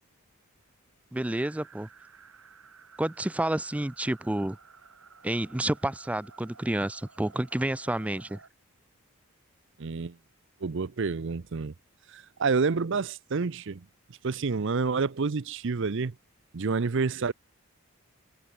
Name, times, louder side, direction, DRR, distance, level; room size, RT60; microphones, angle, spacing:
voice 1, 1.1-1.9 3.0-4.6 5.2-8.4, right 1 dB, 5° right, 0.3 m, -29 dB
sound 1, 1.2-8.5, right 5 dB, 80° right, 7.9 m, -54 dB
voice 2, 9.8-10.2 10.6-11.7 12.1-13.8 14.2-16.1 16.5-17.3, right 4 dB, 60° right, 0.6 m, -28 dB
head